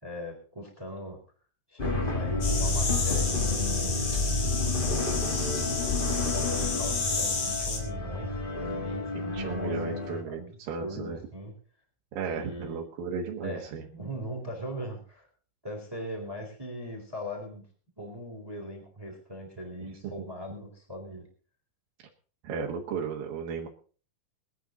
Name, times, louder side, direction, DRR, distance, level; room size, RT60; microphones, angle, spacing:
voice 1, 0.0-1.2 1.7-4.0 4.9-5.1 6.5-10.5 10.8-11.5 12.3-12.8 13.4-15.3 15.6-17.7 18.0-21.3, equal, 5° right, 1 dB, 3.6 m, -40 dB
sound 1, 1.8-10.2, left 2 dB, 30° left, 0.9 m, -30 dB
sound 2, 2.4-7.8, left 4 dB, 50° left, 3.7 m, -32 dB
voice 2, 9.1-11.2 12.1-13.8 22.4-23.7, right 5 dB, 70° right, -1 dB, 3.1 m, -35 dB
23.0 x 9.3 x 4.0 m, 0.40 s
omnidirectional pair, 4.2 m